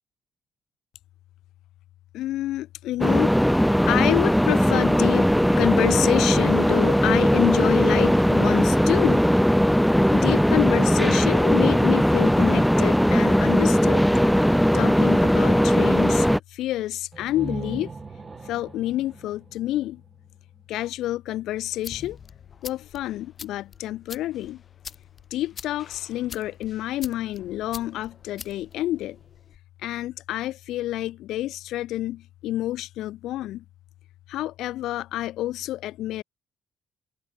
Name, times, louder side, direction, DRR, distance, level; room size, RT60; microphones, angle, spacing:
voice 1, 2.1-3.3 3.9-5.3 5.6-9.3 10.1-14.0 14.7-17.9 18.5-20.0 20.7-22.2 22.6-24.6 25.3-29.2 29.8-33.6 34.3-36.2, left 14 dB, 85° left, 1.9 m, -28 dB
sound 1, 3.0-16.4, equal, ahead, 0.5 m, -19 dB
sound 2, 17.1-20.8, right 4 dB, 30° right, 1.2 m, -39 dB
sound 3, 21.5-29.6, left 6 dB, 45° left, 4.0 m, -45 dB
cardioid pair, 90°, 0 cm